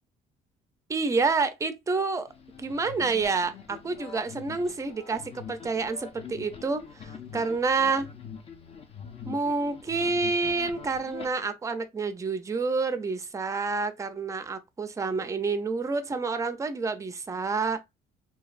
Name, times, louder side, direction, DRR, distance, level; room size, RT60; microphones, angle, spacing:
voice 1, 0.9-2.3 2.6-8.1 9.3-17.8, right 4 dB, 20° right, 0.4 m, -28 dB
sound 1, 2.3-11.3, left 7 dB, 35° left, 0.6 m, -44 dB
3.0 x 2.3 x 2.4 m
cardioid pair, 110°, 17 cm